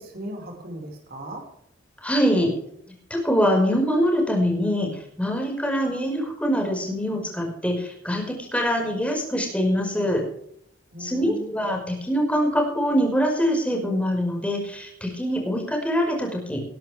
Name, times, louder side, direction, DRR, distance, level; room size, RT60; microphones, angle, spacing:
voice 1, 0.0-1.5 10.9-11.6, right 1 dB, 55° right, 2 dB, 5.2 m, -37 dB
voice 2, 2.0-2.5 3.1-4.9 5.2-10.2 11.0-16.6, equal, 5° left, 1 dB, 5.3 m, -24 dB
20.0 x 11.5 x 3.5 m, 0.69 s
head